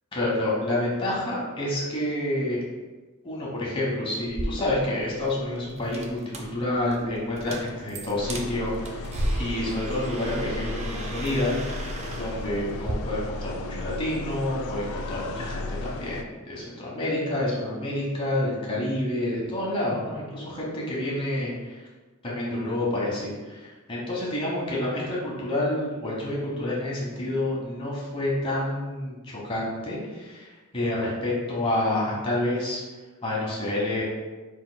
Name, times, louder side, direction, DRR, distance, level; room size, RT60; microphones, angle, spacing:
voice 1, 0.1-2.6 3.2-11.5 12.1-21.8 22.2-29.1 29.4-32.8 33.2-34.0, left 1 dB, 25° left, -5 dB, 1.1 m, -28 dB
sound 1, 4.3-12.9, right 1 dB, 30° right, 0.4 m, -35 dB
sound 2, 8.2-16.2, left 2 dB, 70° left, 0.3 m, -35 dB
4.7 x 4.4 x 2.2 m, 1.2 s
head